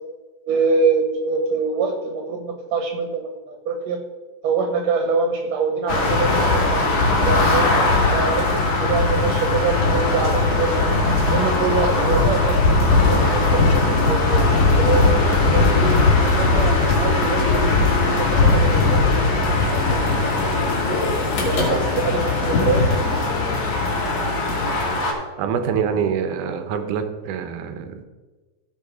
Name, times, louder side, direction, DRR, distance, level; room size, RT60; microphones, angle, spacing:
voice 1, 0.5-4.0 4.4-6.9 7.2-7.7 8.1-8.5 8.8-10.7 11.3-14.4 14.8-16.0 16.4-19.3 19.6-20.1 20.4-20.5 21.4-22.9, right 4 dB, 70° right, 4 dB, 2.1 m, -25 dB
sound 1, 5.9-25.1, left 3 dB, 70° left, 3.7 m, -19 dB
sound 2, 12.2-24.9, left 8 dB, 90° left, 2.4 m, -31 dB
voice 2, 25.4-28.1, right 7 dB, 90° right, 8 dB, 2.4 m, -25 dB
14.5 x 5.2 x 4.9 m, 1.3 s
omnidirectional pair, 3.5 m